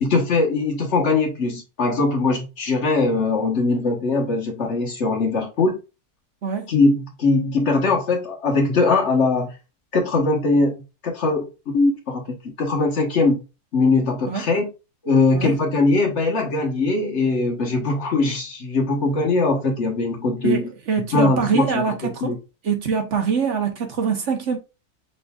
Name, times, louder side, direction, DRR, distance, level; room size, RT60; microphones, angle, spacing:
voice 1, 0.0-5.8 6.7-9.5 9.9-10.7 11.0-11.5 11.7-12.2 12.6-13.4 13.7-14.7 15.0-20.6 21.1-22.4, left 3 dB, 50° left, 1.3 m, -21 dB
voice 2, 6.4-6.7 14.3-14.5 15.3-15.6 20.4-22.3 22.6-24.6, right 6 dB, 55° right, 1.0 m, -24 dB
5.2 x 3.8 x 2.3 m
omnidirectional pair, 1.7 m